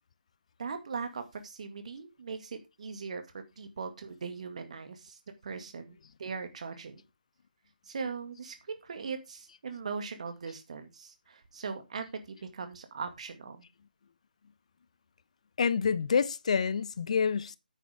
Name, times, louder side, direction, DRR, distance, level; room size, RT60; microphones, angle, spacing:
voice 1, 0.6-7.0 7.9-13.6, right 5 dB, 45° right, 2.1 m, -40 dB
voice 2, 15.6-17.6, left 6 dB, 45° left, 0.8 m, -27 dB
9.5 x 9.2 x 3.6 m
figure-of-eight pair, 150°, 5 cm